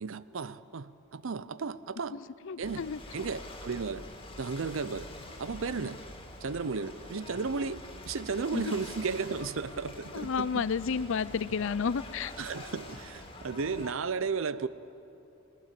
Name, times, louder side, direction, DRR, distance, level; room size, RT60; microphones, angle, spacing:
voice 1, 0.0-2.2 2.6-2.9 3.1-4.0 4.4-5.1 5.4-6.0 6.4-10.7 12.4-14.7, right 4 dB, 65° right, 0.6 m, -34 dB
voice 2, 2.1-3.0 8.5-8.6 10.1-12.3, left 6 dB, 65° left, 0.5 m, -31 dB
Ocean / Boat Water vehicle, 2.6-13.9, left 1 dB, 25° left, 2.5 m, -46 dB
21.0 x 19.0 x 7.6 m
head